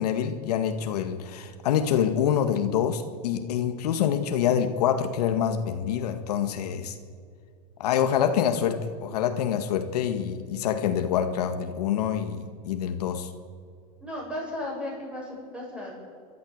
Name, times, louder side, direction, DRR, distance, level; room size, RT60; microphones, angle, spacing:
voice 1, 0.0-7.0 7.8-13.3, left 9 dB, 90° left, 8 dB, 1.8 m, -26 dB
voice 2, 14.0-15.9, left 1 dB, 5° right, -3 dB, 7.7 m, -35 dB
29.5 x 13.0 x 8.1 m, 2.3 s
supercardioid pair, 155°, 20 cm